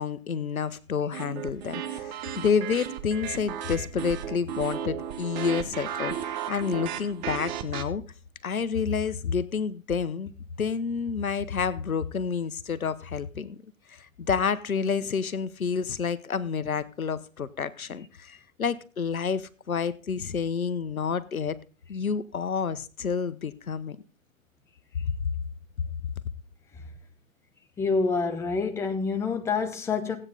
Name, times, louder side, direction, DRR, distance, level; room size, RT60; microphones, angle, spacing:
voice 1, 0.0-8.0 8.4-10.3 10.6-13.6 13.9-21.6 21.9-24.0 25.1-25.3, left 6 dB, 85° left, 1.0 m, -29 dB
sound 1, 1.1-7.8, right 9 dB, 30° right, 1.2 m, -34 dB
voice 2, 27.8-30.2, left 4 dB, 5° left, 0.8 m, -27 dB
15.5 x 8.8 x 3.9 m
figure-of-eight pair, 125°, 42 cm